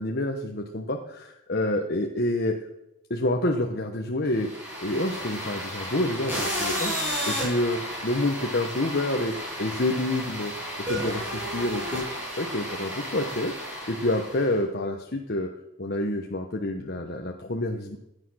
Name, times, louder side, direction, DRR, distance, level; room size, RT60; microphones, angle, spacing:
voice 1, 0.0-2.6 3.1-4.5 4.8-6.9 7.3-10.5 10.8-12.1 12.4-13.5 13.9-15.5 15.8-18.0, left 1 dB, 50° left, 3 dB, 1.1 m, -28 dB
sound 1, 4.3-14.5, equal, 10° right, 7.0 m, -32 dB
16.5 x 9.8 x 6.3 m, 0.86 s
head